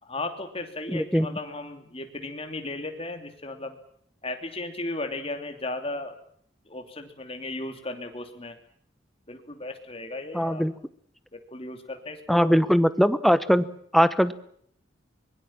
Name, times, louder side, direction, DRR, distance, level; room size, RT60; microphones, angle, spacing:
voice 1, 0.0-3.8 4.2-6.1 6.7-8.5 9.3-10.7 11.3-12.6, left 2 dB, 30° left, 6 dB, 2.9 m, -35 dB
voice 2, 0.9-1.3 10.3-10.7 12.3-13.7 13.9-14.3, equal, ahead, 14 dB, 0.9 m, -21 dB
24.5 x 21.5 x 7.4 m, 0.65 s
head